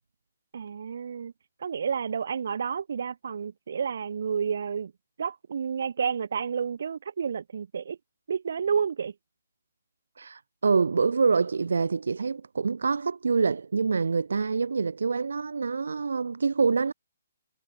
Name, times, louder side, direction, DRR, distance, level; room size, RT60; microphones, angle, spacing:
voice 1, 0.5-1.3 1.6-4.9 5.2-8.0 8.3-9.1, right 6 dB, 55° right, 2.3 m, -30 dB
voice 2, 10.2-16.9, right 5 dB, 85° right, 1.2 m, -26 dB
hypercardioid pair, 170°, 0 cm